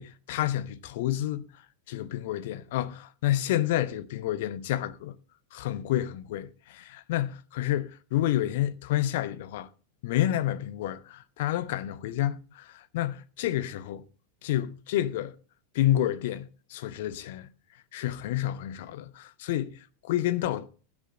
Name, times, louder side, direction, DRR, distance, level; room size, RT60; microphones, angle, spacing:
voice 1, 0.0-1.5 1.9-5.2 5.5-9.7 10.0-14.0 14.4-15.3 15.7-17.5 17.9-20.7, left 13 dB, 50° left, 1.0 m, -29 dB
15.5 x 9.7 x 3.9 m
figure-of-eight pair, 90°, 0 cm